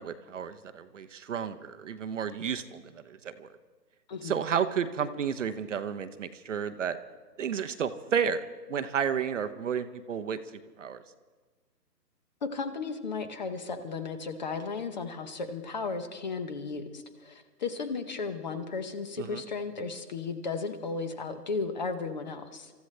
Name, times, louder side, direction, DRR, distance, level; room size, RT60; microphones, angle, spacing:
voice 1, 0.0-3.5 4.2-7.0 7.4-8.4 8.7-10.4 10.8-11.0 19.2-19.4, right 7 dB, 50° right, 10 dB, 0.8 m, -32 dB
voice 2, 12.4-22.7, left 4 dB, 25° left, 10 dB, 0.8 m, -35 dB
26.0 x 14.0 x 3.3 m, 1.3 s
hypercardioid pair, 155°, 49 cm